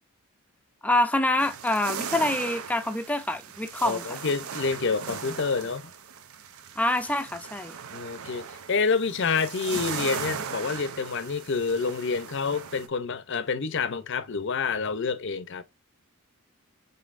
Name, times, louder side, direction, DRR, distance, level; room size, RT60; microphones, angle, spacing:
voice 1, 0.8-4.1 6.8-7.7, left 1 dB, 5° left, 0.5 m, -26 dB
sound 1, 1.4-12.9, right 7 dB, 85° right, 0.6 m, -38 dB
voice 2, 3.8-5.9 7.9-15.6, left 5 dB, 55° left, 0.6 m, -28 dB
5.3 x 4.0 x 2.4 m
head